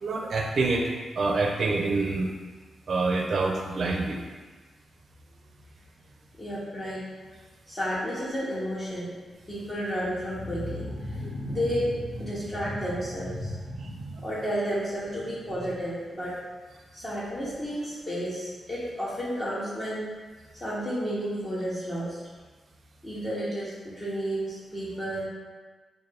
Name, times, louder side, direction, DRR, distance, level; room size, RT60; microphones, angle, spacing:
voice 1, 0.0-0.9 1.2-2.3 2.9-4.2 13.8-13.9, right 3 dB, 55° right, 1 dB, 0.5 m, -26 dB
voice 2, 6.4-7.0 7.7-9.1 9.5-16.3 16.9-20.0 20.5-22.2 23.0-25.3, equal, 20° left, -9 dB, 0.7 m, -31 dB
4.2 x 2.2 x 3.3 m, 1.4 s
wide cardioid pair, 140°, 0 cm